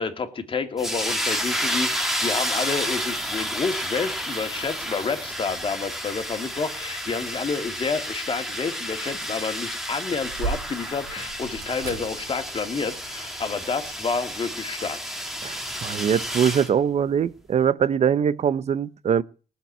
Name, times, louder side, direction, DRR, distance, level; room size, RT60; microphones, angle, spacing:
voice 1, 0.0-15.0, left 5 dB, 30° left, 2.5 m, -29 dB
sound 1, 0.8-16.7, equal, ahead, 2.2 m, -31 dB
sound 2, 2.8-13.9, right 5 dB, 90° right, 4.6 m, -41 dB
voice 2, 15.4-19.2, right 8 dB, 40° right, 0.9 m, -22 dB
19.0 x 7.5 x 8.7 m
cardioid pair, 110°, 17 cm